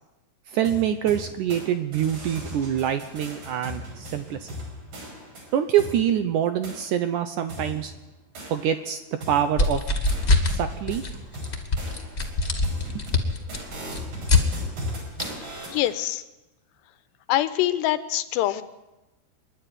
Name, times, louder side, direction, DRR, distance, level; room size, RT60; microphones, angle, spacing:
voice 1, 0.5-4.5 5.5-7.9 8.5-9.0 9.3-9.8 10.5-11.0 13.1-13.2, right 10 dB, 85° right, 9 dB, 1.8 m, -25 dB
sound 1, 0.6-1.7 1.9-6.0 6.6-6.8 7.5-8.9 9.2-16.0, equal, 55° right, 6.8 m, -38 dB
sound 2, 9.6-10.6 10.9-11.1 11.4-14.4 15.2-15.3, left 3 dB, 25° left, 1.5 m, -22 dB
voice 2, 15.7-16.2 17.3-18.6, left 14 dB, 85° left, 12 dB, 3.1 m, -24 dB
25.0 x 11.0 x 9.8 m, 1.0 s
omnidirectional pair, 4.8 m